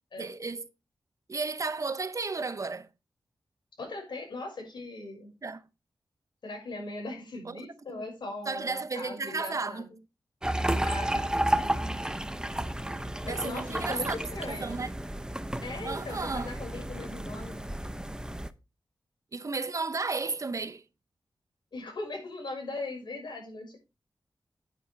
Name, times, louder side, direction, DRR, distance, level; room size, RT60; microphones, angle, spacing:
voice 1, 0.2-0.7 1.3-2.9 5.4-5.6 7.4-8.0 8.5-9.9 13.3-14.9 15.8-16.6 19.3-20.8, right 4 dB, 45° right, 0.8 m, -33 dB
voice 2, 3.8-5.3 6.4-9.9 10.8-11.3 13.2-14.9 15.6-17.7 21.7-23.8, left 2 dB, 80° left, 6.0 m, -39 dB
sound 1, 10.4-18.5, right 1 dB, 10° right, 0.8 m, -32 dB
9.7 x 9.6 x 3.4 m
wide cardioid pair, 85°, 8 cm